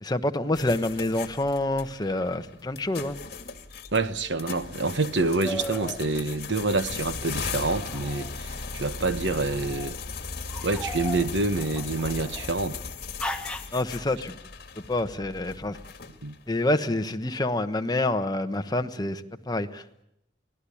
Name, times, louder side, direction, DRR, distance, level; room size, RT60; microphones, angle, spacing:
voice 1, 0.0-3.2 13.7-14.3 14.9-15.8 16.5-20.0, left 1 dB, 20° left, 1.1 m, -27 dB
sound 1, 0.5-16.5, left 4 dB, 60° left, 2.3 m, -38 dB
voice 2, 3.9-10.0 10.6-12.8 16.2-16.3, right 3 dB, 80° right, 1.2 m, -27 dB
sound 2, 5.4-6.0 7.5-8.7 9.5-9.9 10.5-12.6 13.2-13.8, equal, 5° left, 1.4 m, -37 dB
25.0 x 17.5 x 8.6 m
head